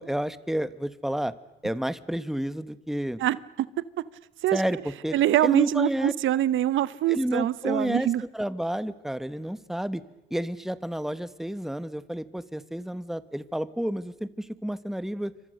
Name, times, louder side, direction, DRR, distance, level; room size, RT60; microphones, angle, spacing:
voice 1, 0.0-1.3 1.6-3.2 4.5-5.1 5.4-6.1 7.1-8.1 8.3-10.0 10.3-15.3, equal, ahead, 14 dB, 1.3 m, -30 dB
voice 2, 3.2-3.7 4.4-4.6 5.1-8.2, right 13 dB, 80° right, 17 dB, 0.8 m, -24 dB
28.5 x 25.0 x 6.6 m, 0.99 s
cardioid pair, 90°, 20 cm